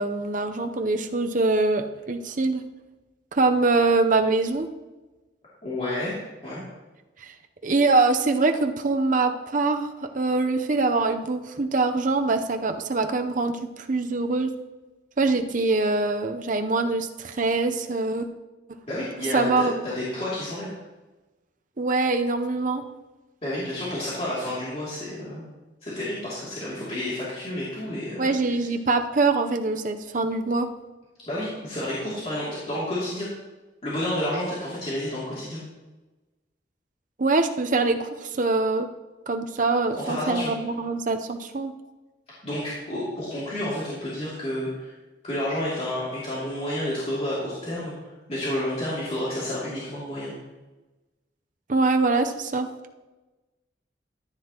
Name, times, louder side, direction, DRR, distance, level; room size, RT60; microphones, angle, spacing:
voice 1, 0.0-2.6 3.3-4.7 7.2-7.3 7.6-14.5 15.2-18.3 19.3-19.7 21.8-22.8 28.2-30.7 37.2-38.9 39.3-41.7 51.7-52.7, right 3 dB, 45° right, 6 dB, 0.7 m, -24 dB
voice 2, 5.6-6.2 6.4-6.6 18.9-20.8 23.4-25.4 25.8-28.6 31.3-33.3 33.8-35.6 40.0-40.5 42.4-44.9 45.2-47.9 48.3-50.3, left 1 dB, 35° left, -9 dB, 2.7 m, -30 dB
14.0 x 9.4 x 3.0 m, 1.1 s
head